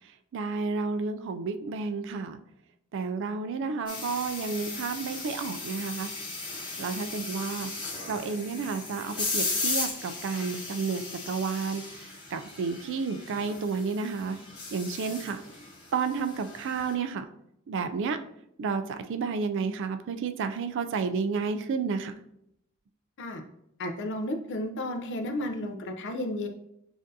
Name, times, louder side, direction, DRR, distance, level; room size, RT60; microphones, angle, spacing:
voice 1, 0.3-2.4 2.9-6.1 6.8-7.7 8.1-11.8 12.3-14.4 14.7-15.4 15.9-17.2 17.7-18.2 18.6-22.1, right 5 dB, 55° right, 9 dB, 0.3 m, -31 dB
sound 1, 3.9-16.9, left 3 dB, 20° left, 1.4 m, -36 dB
voice 2, 23.8-26.5, left 1 dB, 55° left, 5 dB, 0.6 m, -33 dB
7.3 x 2.6 x 2.7 m, 0.78 s
head